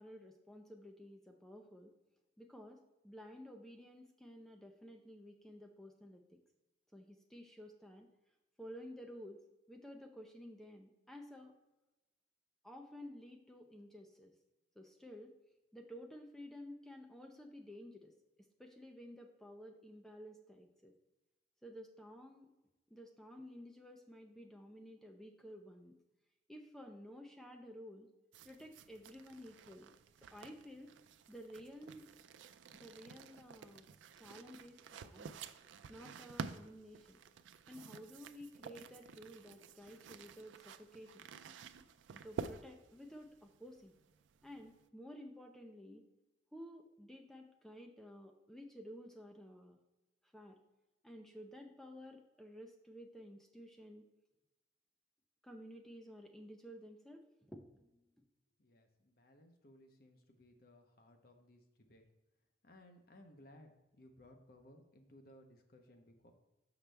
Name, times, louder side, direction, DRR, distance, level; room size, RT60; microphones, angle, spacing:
voice 1, 0.0-1.9 2.4-6.4 6.9-8.1 8.6-9.4 9.7-11.6 12.6-14.3 14.8-15.4 15.7-18.1 18.6-20.9 21.6-22.5 22.9-26.0 26.5-28.1 28.4-29.9 30.3-30.9 31.3-32.1 32.7-33.9 34.2-35.4 35.9-37.2 37.7-41.3 42.1-43.9 44.4-46.0 46.5-49.8 50.2-50.6 51.0-54.1 55.4-58.0, equal, ahead, 3 dB, 0.5 m, -53 dB
sound 1, 28.3-44.9, right 5 dB, 90° right, 0.4 m, -51 dB
voice 2, 58.6-62.1 62.6-66.3, left 1 dB, 55° left, 4 dB, 0.8 m, -61 dB
6.3 x 5.9 x 3.4 m, 1.0 s
head